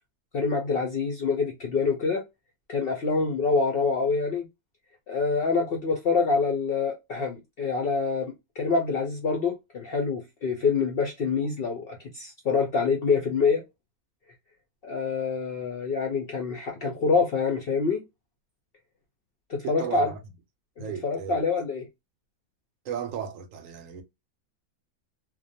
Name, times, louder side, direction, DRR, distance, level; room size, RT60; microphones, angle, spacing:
voice 1, 0.3-2.2 2.7-4.4 5.1-13.6 14.8-18.0 19.5-20.1 21.0-21.8, left 4 dB, 65° left, 0.6 m, -26 dB
voice 2, 19.6-20.2 20.8-21.5 22.8-24.0, right 8 dB, 70° right, 0.9 m, -35 dB
2.4 x 2.2 x 2.6 m
omnidirectional pair, 1.5 m